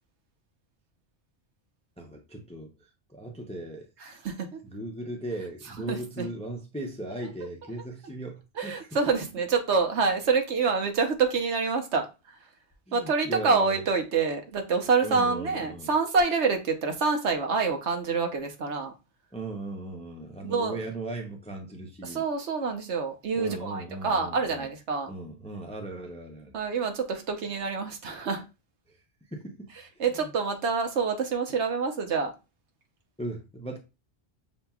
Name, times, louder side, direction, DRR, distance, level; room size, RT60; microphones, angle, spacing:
voice 1, 2.0-3.9 4.6-8.9 12.9-13.8 15.0-15.9 19.3-22.2 23.4-24.7 25.1-26.5 28.9-29.0 29.3-30.3 33.2-33.8, right 1 dB, 10° left, 0.5 m, -38 dB
voice 2, 4.0-4.6 5.9-6.2 8.6-12.0 12.9-18.9 20.4-20.8 22.0-25.1 26.5-28.4 30.0-32.3, right 4 dB, 80° right, 1.2 m, -27 dB
7.0 x 2.8 x 2.3 m
omnidirectional pair, 1.1 m